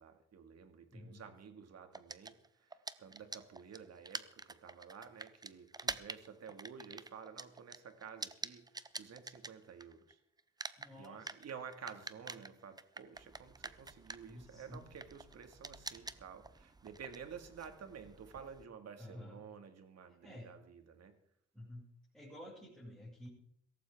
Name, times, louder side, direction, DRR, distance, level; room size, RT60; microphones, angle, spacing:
voice 1, 0.0-2.3 3.0-8.7 9.0-10.2 11.0-21.2, right 7 dB, 55° right, 7 dB, 2.1 m, -51 dB
voice 2, 0.9-1.3 10.8-11.4 14.3-14.9 19.0-19.4 20.2-20.5 21.5-21.9 22.1-23.3, left 1 dB, 5° left, -9 dB, 6.3 m, -51 dB
sound 1, 1.9-10.1 10.4-18.6, right 3 dB, 15° right, 0.6 m, -47 dB
17.0 x 14.5 x 3.6 m, 0.69 s
cardioid pair, 90°, 30 cm